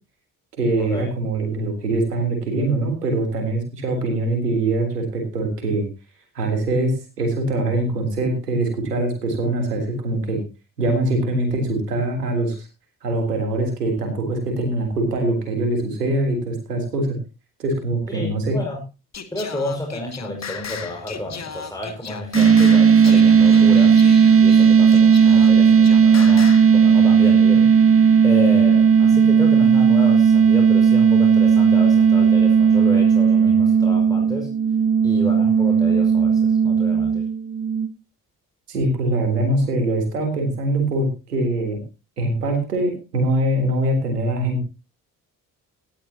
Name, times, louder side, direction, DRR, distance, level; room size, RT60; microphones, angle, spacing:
voice 1, 0.5-5.9 6.4-10.4 10.8-12.7 13.0-17.2 17.6-18.6 38.7-41.8 42.2-44.6, right 2 dB, 85° right, 4 dB, 3.5 m, -23 dB
voice 2, 18.1-18.8 19.3-24.0 24.4-27.7 28.2-34.5 35.0-37.2, left 1 dB, 10° left, 1 dB, 5.4 m, -31 dB
Singing, 19.1-26.7, left 6 dB, 35° left, 1.9 m, -36 dB
sound 1, 22.3-37.9, right 6 dB, 30° right, 1.8 m, -15 dB
18.0 x 13.0 x 2.9 m, 0.29 s
figure-of-eight pair, 40°, 46 cm